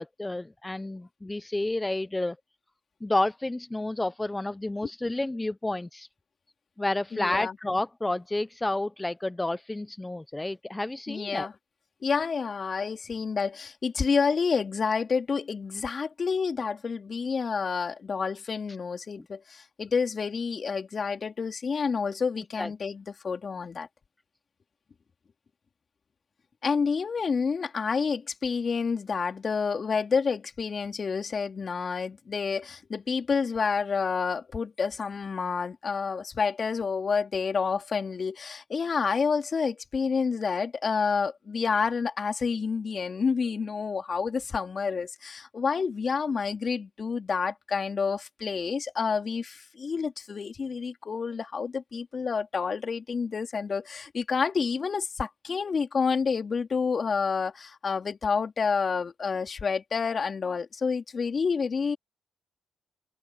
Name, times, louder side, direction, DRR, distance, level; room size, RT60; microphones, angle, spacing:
voice 1, 0.0-2.4 3.0-6.1 6.8-11.5 22.6-22.7, left 2 dB, 20° left, 1.1 m, -30 dB
voice 2, 7.1-7.5 11.1-11.5 12.0-23.9 26.6-62.0, left 5 dB, 50° left, 3.5 m, -29 dB
supercardioid pair, 50°, 0 cm